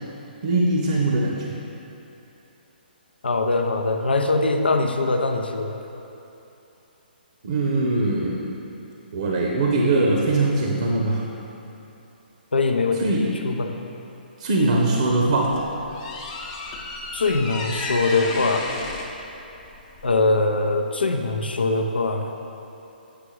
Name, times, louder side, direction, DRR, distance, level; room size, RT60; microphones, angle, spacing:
voice 1, 0.4-1.5 7.4-8.4 9.1-11.2 13.0-13.4 14.4-15.6, right 2 dB, 50° right, -1 dB, 0.7 m, -21 dB
voice 2, 3.2-5.7 12.5-13.0 13.4-13.7 17.1-18.7 20.0-22.3, left 3 dB, 75° left, 5 dB, 0.5 m, -22 dB
sound 1, 15.1-20.3, left 2 dB, 30° left, 0.6 m, -34 dB
8.4 x 4.9 x 3.2 m, 2.9 s
figure-of-eight pair, 130°, 5 cm